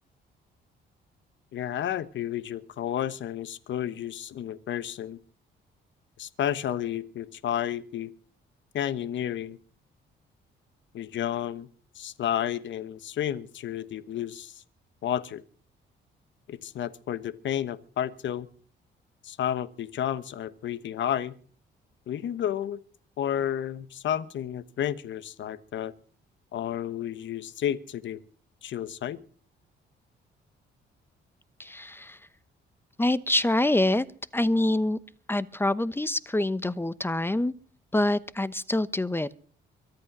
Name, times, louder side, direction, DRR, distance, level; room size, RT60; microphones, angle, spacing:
voice 1, 1.5-5.2 6.2-8.1 8.7-9.6 10.9-11.7 12.0-14.6 15.0-15.4 16.5-18.5 19.2-21.3 22.1-22.8 23.2-25.9 26.5-28.2 28.6-29.2, left 10 dB, 70° left, 15 dB, 1.3 m, -31 dB
voice 2, 31.6-32.2 33.0-34.0 34.3-35.0 35.3-37.5 37.9-39.3, left 1 dB, 10° left, 17 dB, 0.9 m, -25 dB
24.0 x 8.6 x 6.2 m, 0.43 s
cardioid pair, 90°, 20 cm